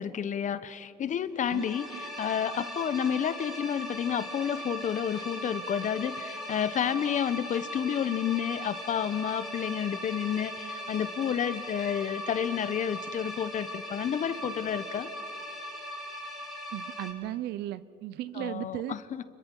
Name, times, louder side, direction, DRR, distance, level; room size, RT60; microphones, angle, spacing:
voice 1, 0.0-15.1 18.3-19.2, left 8 dB, 50° left, 14 dB, 1.1 m, -30 dB
sound 1, 1.4-17.1, equal, ahead, 5.7 m, -39 dB
voice 2, 16.7-19.0, right 14 dB, 80° right, 16 dB, 0.8 m, -36 dB
30.0 x 22.5 x 5.5 m, 2.4 s
cardioid pair, 110°, 17 cm